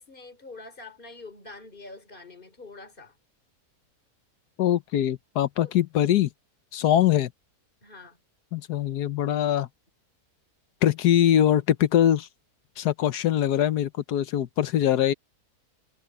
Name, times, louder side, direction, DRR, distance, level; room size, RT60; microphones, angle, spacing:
voice 1, 0.0-3.2 5.6-5.7 6.7-7.1 7.8-8.2 8.7-8.8, left 3 dB, 30° left, 4.0 m, -45 dB
voice 2, 4.6-6.3 6.7-7.3 8.5-9.7 10.8-12.3 12.8-15.1, left 11 dB, 85° left, 1.4 m, -22 dB
omnidirectional pair, 1.6 m